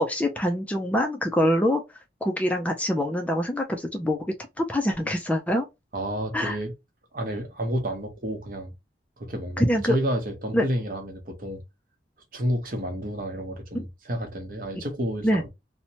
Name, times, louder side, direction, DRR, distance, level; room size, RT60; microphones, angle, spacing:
voice 1, 0.0-1.8 2.2-4.2 4.6-5.7 6.3-6.6 9.6-10.0 10.5-10.6 13.7-13.8 15.2-15.4, equal, 10° left, 0.3 m, -24 dB
voice 2, 5.9-6.7 7.1-8.7 9.2-11.6 12.3-15.5, equal, 50° right, 0.8 m, -30 dB
2.8 x 2.1 x 2.8 m
head